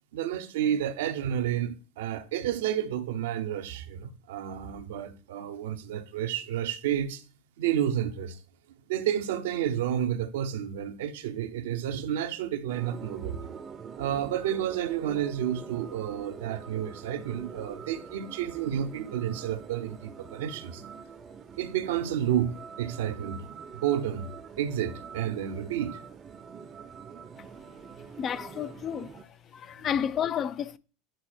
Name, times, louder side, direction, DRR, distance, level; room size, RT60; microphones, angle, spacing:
voice 1, 0.1-7.2 7.6-8.4 8.9-13.5 14.0-20.8 21.6-23.4 23.8-24.3 24.6-26.0, right 10 dB, 70° right, 0.8 m, -30 dB
sound 1, 12.7-29.2, right 6 dB, 30° right, 0.7 m, -45 dB
voice 2, 28.2-29.1 29.5-30.8, left 8 dB, 40° left, 0.5 m, -31 dB
9.3 x 4.2 x 4.4 m
hypercardioid pair, 80°, 0 cm